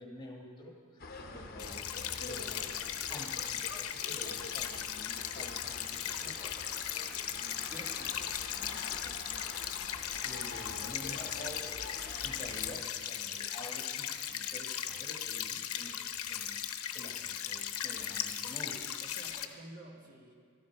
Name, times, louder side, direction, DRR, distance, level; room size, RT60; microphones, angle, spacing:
voice 1, 0.0-11.9 12.2-16.7 16.9-18.9, left 1 dB, 20° left, -1 dB, 1.6 m, -49 dB
sound 1, 1.0-12.8, left 3 dB, 40° left, 0.9 m, -46 dB
voice 2, 1.1-1.6 19.0-20.3, right 1 dB, 40° right, 0 dB, 1.6 m, -52 dB
sound 2, 1.6-19.4, left 10 dB, 80° left, 0.8 m, -38 dB
16.0 x 12.5 x 4.5 m, 2.1 s
head